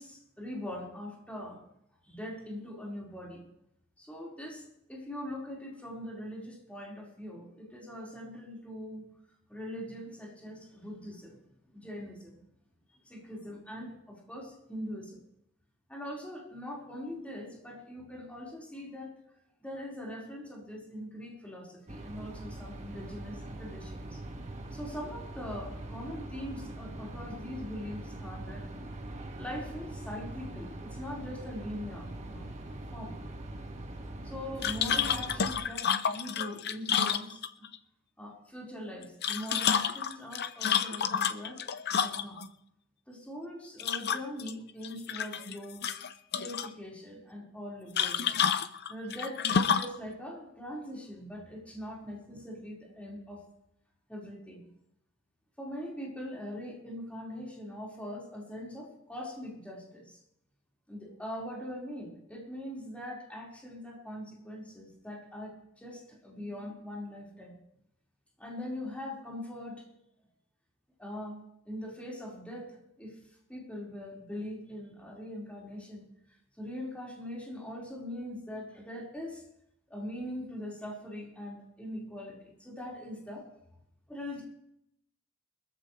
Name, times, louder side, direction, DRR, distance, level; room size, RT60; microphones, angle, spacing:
voice 1, 0.0-1.6 2.0-3.4 4.0-4.6 4.9-9.0 9.5-11.4 11.7-12.4 13.0-15.2 15.9-19.1 19.6-24.2 24.7-28.7 29.4-32.5 32.9-33.2 34.2-37.4 38.2-41.6 42.0-42.4 43.1-45.9 46.3-48.4 48.9-53.4 54.1-54.6 55.6-60.2 60.9-67.5 68.4-69.9 71.0-73.2 73.5-76.0 76.6-79.4 79.9-83.4 84.1-84.4, left 1 dB, 5° left, -4 dB, 4.8 m, -42 dB
sound 1, 21.9-35.5, right 1 dB, 35° right, 1.9 m, -42 dB
sound 2, 34.6-37.8 39.0-42.5 43.8-44.5 44.8-45.5 45.8-46.7 48.0-50.0, left 7 dB, 50° left, 0.7 m, -29 dB
23.5 x 14.5 x 3.3 m, 0.76 s
head